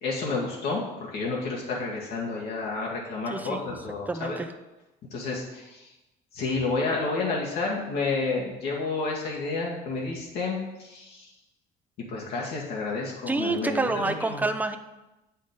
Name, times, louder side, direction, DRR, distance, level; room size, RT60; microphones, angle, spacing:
voice 1, 0.0-4.4 5.1-5.9 6.3-11.3 12.1-14.4, left 3 dB, 75° left, -3 dB, 1.9 m, -30 dB
voice 2, 3.3-3.6 4.1-4.5 13.3-14.8, right 3 dB, 10° right, 7 dB, 0.6 m, -28 dB
8.1 x 5.6 x 5.2 m, 1.0 s
cardioid pair, 110°, 17 cm